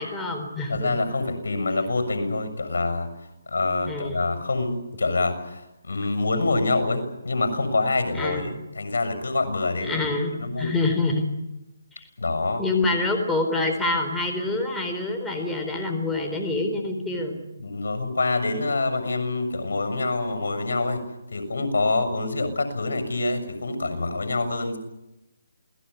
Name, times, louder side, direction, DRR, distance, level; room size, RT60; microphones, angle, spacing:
voice 1, 0.0-1.0 3.9-4.2 8.1-8.6 9.8-11.3 12.0-12.1 12.6-17.4, left 2 dB, 5° left, 2 dB, 4.1 m, -26 dB
voice 2, 0.7-3.1 3.5-10.1 10.4-10.8 12.2-12.6 17.6-21.0 21.3-24.8, left 3 dB, 75° left, 8 dB, 6.9 m, -26 dB
28.5 x 20.0 x 8.4 m, 0.93 s
hypercardioid pair, 155°, 0 cm